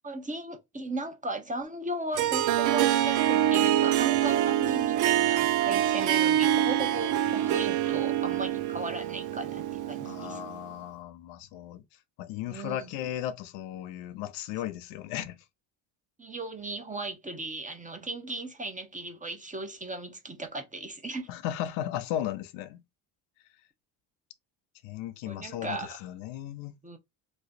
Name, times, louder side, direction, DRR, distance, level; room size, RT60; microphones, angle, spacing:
voice 1, 0.0-10.4 12.5-12.9 16.2-21.3 25.2-26.0 26.8-27.0, right 2 dB, 15° right, 1.0 m, -37 dB
Harp, 2.1-10.6, right 12 dB, 45° right, 0.4 m, -25 dB
voice 2, 10.0-11.8 12.2-15.4 21.3-22.8 24.8-26.8, left 12 dB, 80° left, 0.8 m, -36 dB
3.1 x 2.2 x 4.0 m
supercardioid pair, 75°, 47 cm